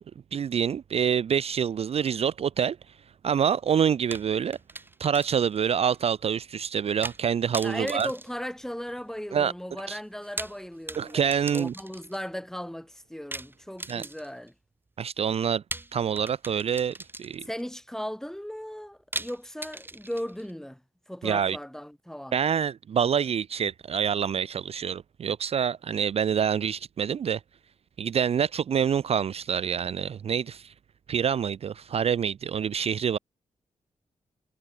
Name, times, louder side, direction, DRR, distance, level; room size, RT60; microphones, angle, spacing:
voice 1, 0.3-2.8 3.2-4.6 5.0-8.1 9.3-9.5 9.9-10.0 11.0-11.7 13.9-14.0 15.0-15.6 15.9-17.4 21.2-21.6 22.3-27.4 28.0-30.7 31.1-33.2, right 8 dB, 55° right, 0.4 m, -26 dB
sound 1, 4.1-5.6 5.9-6.0 7.0-7.3 7.5-9.1 10.1-12.3 13.3-14.5 15.7-17.6 19.1-20.5, right 2 dB, 15° right, 0.9 m, -39 dB
voice 2, 7.6-14.5 17.4-20.8 21.1-22.4, equal, 5° left, 3.7 m, -37 dB
wide cardioid pair, 110°, 13 cm